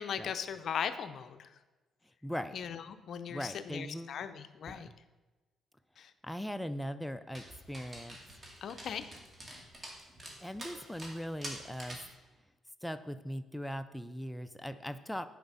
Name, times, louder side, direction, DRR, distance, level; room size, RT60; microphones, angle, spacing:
voice 1, 0.0-1.6 2.5-4.9 6.0-6.1 8.6-9.1, left 7 dB, 65° left, 11 dB, 0.5 m, -38 dB
voice 2, 2.2-2.6 3.3-4.2 4.7-4.9 6.2-8.2 10.4-12.0 12.8-15.3, equal, 5° left, 10 dB, 0.4 m, -40 dB
Dog, 7.3-12.1, right 1 dB, 30° right, 2.0 m, -47 dB
9.3 x 4.9 x 5.5 m, 1.2 s
cardioid pair, 90°, 0 cm